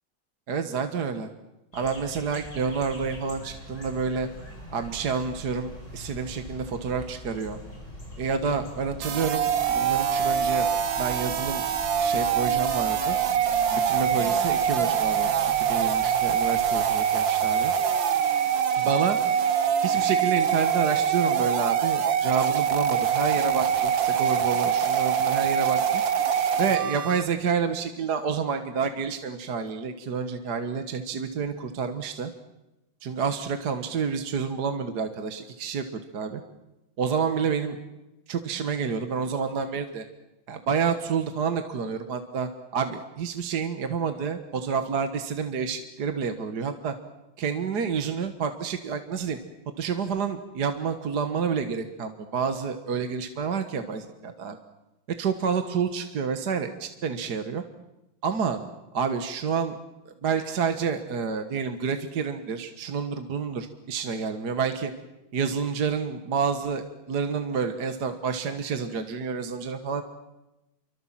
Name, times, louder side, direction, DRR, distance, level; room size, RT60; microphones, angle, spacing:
voice 1, 0.5-1.3 1.7-4.3 4.7-7.6 8.2-10.7 11.0-11.6 12.0-13.2 13.7-17.7 18.8-19.2 19.8-26.0 26.6-32.3 33.0-36.4 37.0-37.8 38.3-40.0 40.5-46.9 47.4-49.4 49.8-54.6 55.2-57.6 58.2-58.6 58.9-59.8 60.1-64.9 65.3-70.0, right 6 dB, 55° right, 7 dB, 2.0 m, -29 dB
sound 1, 1.7-16.9, left 1 dB, 35° left, 8.1 m, -43 dB
sound 2, 9.0-27.2, right 8 dB, 70° right, 2.1 m, -24 dB
29.5 x 24.5 x 7.5 m, 0.97 s
omnidirectional pair, 2.2 m